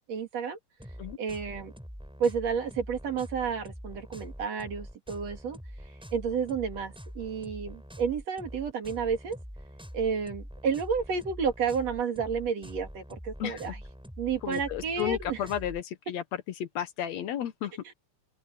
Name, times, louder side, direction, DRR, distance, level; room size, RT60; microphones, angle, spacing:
voice 1, 0.1-0.6 1.2-1.7 2.2-5.6 6.1-9.4 9.9-13.8 14.2-15.4, right 6 dB, 60° right, 3.5 m, -31 dB
sound 1, 0.8-15.8, equal, ahead, 7.6 m, -44 dB
voice 2, 13.4-13.7 14.4-16.2 16.6-17.7, left 10 dB, 70° left, 2.1 m, -33 dB
open air
omnidirectional pair, 3.4 m